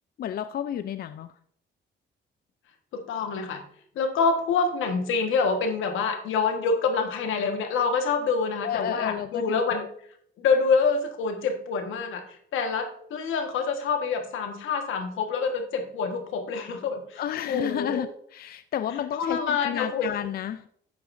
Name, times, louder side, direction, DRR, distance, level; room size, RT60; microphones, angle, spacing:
voice 1, 0.2-1.3 8.6-9.9 17.2-20.7, left 10 dB, 50° left, 12 dB, 0.4 m, -31 dB
voice 2, 2.9-3.6 3.9-9.8 10.4-17.2 17.5-18.1 19.2-20.1, left 5 dB, 80° left, 6 dB, 1.4 m, -26 dB
10.5 x 8.0 x 2.6 m, 0.66 s
cardioid pair, 90°, 20 cm